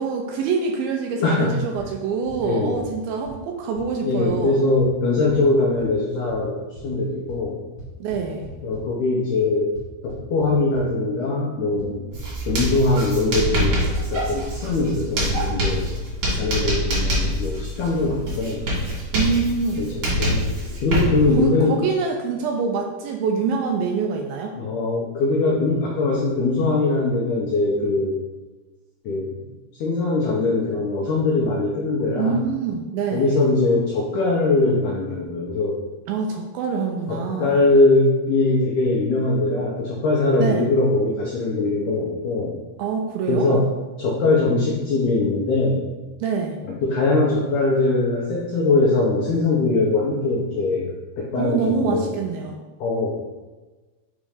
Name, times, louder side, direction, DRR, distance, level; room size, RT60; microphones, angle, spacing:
voice 1, 0.0-4.6 8.0-8.5 19.1-19.8 21.3-24.5 32.2-33.4 36.1-37.6 40.4-40.7 42.8-43.7 46.2-46.6 51.4-52.6, right 5 dB, 80° right, 2 dB, 2.2 m, -25 dB
voice 2, 1.2-1.6 2.4-2.8 4.0-7.6 8.6-9.7 10.0-12.1 12.5-15.9 16.3-18.6 19.8-20.5 20.8-21.8 24.6-28.2 29.1-29.4 29.8-32.4 33.1-35.8 37.1-42.6 43.3-43.7 44.0-45.9 46.6-52.2 52.8-53.1, left 3 dB, 80° left, -3 dB, 1.8 m, -21 dB
sound 1, 1.8-1.9 2.3-2.4 2.8-2.9 3.2-3.3 3.8-3.9 4.3-4.4 4.8-4.9 5.3-5.4 5.8-5.9 6.3-6.4 6.8-6.9 7.3-7.4 7.8-8.8 9.7-10.8 11.8-11.9 12.1-12.5 12.8-12.9 13.8-13.9 14.2-14.3 14.5-14.6 14.8-14.9, right 2 dB, 45° left, 1.5 m, -39 dB
Writing, 12.1-21.4, equal, 50° right, 3.1 m, -25 dB
6.1 x 3.2 x 4.9 m, 1.2 s
omnidirectional pair, 4.5 m